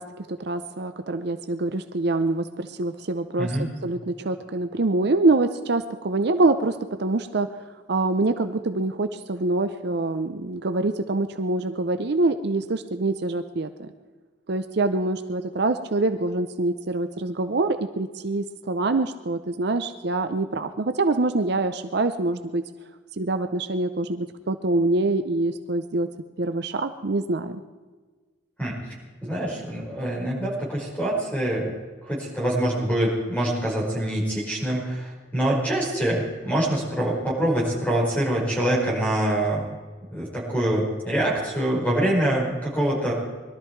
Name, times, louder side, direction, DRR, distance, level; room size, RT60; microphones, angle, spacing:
voice 1, 0.0-13.9 14.5-22.6 23.2-26.1 26.4-27.6, right 2 dB, 55° right, 9 dB, 0.6 m, -25 dB
voice 2, 3.4-3.7 28.6-28.8 29.2-31.7 32.0-39.6 40.1-43.1, right 1 dB, 10° left, -4 dB, 5.1 m, -25 dB
21.5 x 13.0 x 4.6 m, 1.4 s
head